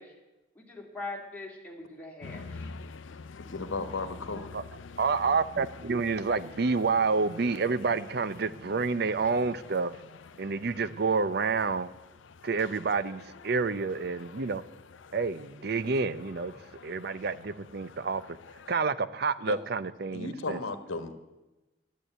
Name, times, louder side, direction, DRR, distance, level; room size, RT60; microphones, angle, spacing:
voice 1, 0.6-2.7, left 2 dB, 10° left, -2 dB, 2.3 m, -41 dB
sound 1, 2.2-18.8, left 4 dB, 75° left, 0.6 m, -48 dB
voice 2, 3.5-4.5 19.5-19.6 20.1-21.1, left 3 dB, 90° left, 10 dB, 1.2 m, -34 dB
voice 3, 5.0-9.9 10.4-11.9 12.4-14.6 15.1-16.5 16.8-18.2 18.7-20.6, right 4 dB, 55° right, 15 dB, 0.5 m, -28 dB
11.0 x 8.3 x 9.1 m, 1.1 s
head